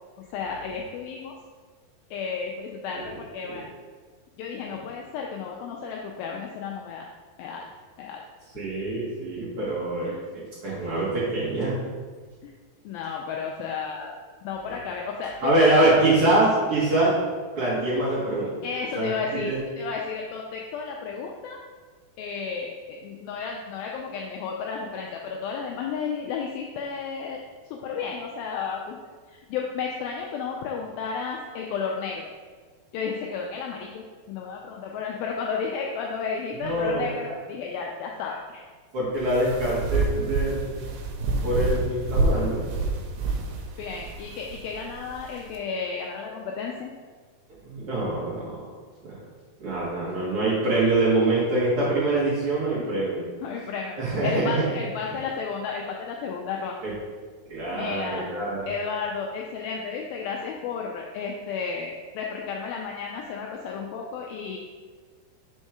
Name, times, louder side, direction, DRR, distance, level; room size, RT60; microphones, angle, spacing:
voice 1, 0.3-1.3 2.1-3.6 4.4-7.1 7.4-7.7 8.0-8.2 10.1-10.2 12.4-12.5 12.9-14.1 14.4-15.9 18.6-21.6 22.2-27.4 27.7-29.0 29.3-32.3 32.9-38.6 43.8-46.9 53.4-54.0 54.2-56.8 57.7-58.3 58.7-64.6, left 5 dB, 85° left, 0 dB, 2.1 m, -32 dB
voice 2, 8.5-11.8 15.4-17.1 17.6-18.5 18.9-19.6 36.5-37.1 38.9-40.9 41.4-42.6 47.6-48.6 49.0-49.1 49.6-53.2 54.0-54.6 55.1-55.2 56.8-56.9 57.5-58.7, right 2 dB, 70° right, -8 dB, 1.3 m, -24 dB
sound 1, 39.2-45.6, right 3 dB, 90° right, 2.7 m, -28 dB
5.3 x 4.5 x 4.8 m, 1.5 s
omnidirectional pair, 4.6 m